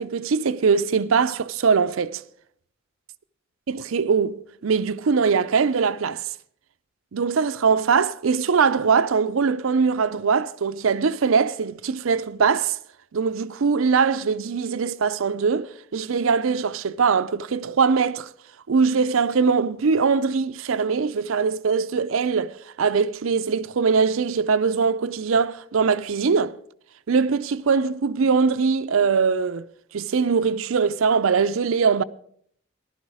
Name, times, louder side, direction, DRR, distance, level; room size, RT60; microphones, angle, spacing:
voice 1, 0.0-2.2 3.7-6.2 7.1-12.8 13.1-18.3 18.7-26.6 27.1-29.6 29.9-32.0, right 5 dB, 80° right, 0.5 m, -22 dB
14.5 x 11.5 x 4.9 m
head